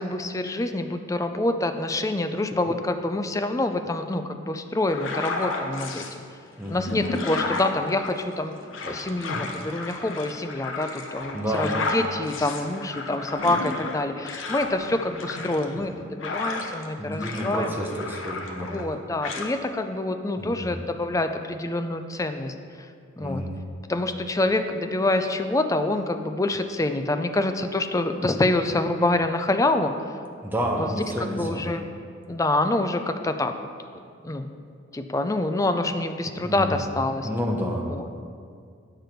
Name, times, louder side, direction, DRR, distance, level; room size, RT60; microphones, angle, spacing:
voice 1, 0.0-6.2 6.7-8.5 8.8-17.7 18.6-22.9 23.2-23.5 23.9-29.9 30.8-30.9 31.2-31.9 32.3-33.5 34.2-34.5 34.9-37.3 37.9-38.0, left 2 dB, 15° left, 7 dB, 0.4 m, -26 dB
sound 1, 4.9-6.1 6.6-16.9 17.2-18.9 19.2-19.5, left 3 dB, 75° left, 0.9 m, -33 dB
voice 2, 6.6-6.9 11.3-11.7 17.0-18.7 20.4-20.7 23.2-23.5 30.4-31.6 36.4-36.7 37.2-38.1, equal, 10° right, -1 dB, 1.0 m, -29 dB
9.4 x 6.8 x 4.6 m, 2.2 s
head